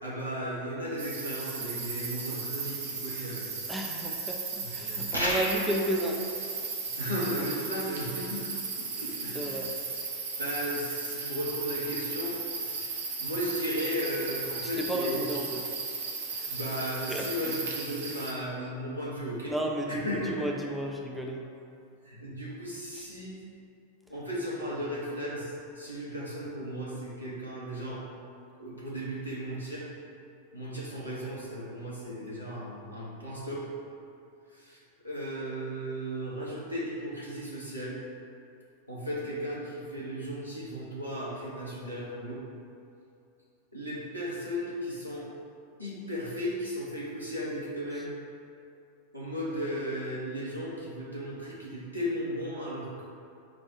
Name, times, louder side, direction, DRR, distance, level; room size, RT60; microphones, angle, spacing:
voice 1, 0.0-3.5 4.6-5.0 7.0-8.4 8.8-9.7 10.4-15.2 16.5-19.6 19.9-20.5 22.0-23.4 24.1-28.0 28.6-29.9 30.5-33.7 34.5-34.8 35.0-38.0 38.9-42.4 43.7-45.3 45.8-48.1 49.1-53.0, equal, 90° right, -8 dB, 1.0 m, -35 dB
sound 1, 1.0-18.3, right 4 dB, 60° right, 0.7 m, -36 dB
voice 2, 3.7-6.2 9.3-9.7 14.8-15.6 16.4-16.5 17.1-17.5 19.5-20.0 20.3-21.4, right 1 dB, 5° right, -1 dB, 0.4 m, -32 dB
sound 2, 5.1-5.8, equal, 90° left, 0.6 m, -29 dB
4.4 x 2.3 x 4.6 m, 2.6 s
figure-of-eight pair, 90°, 0 cm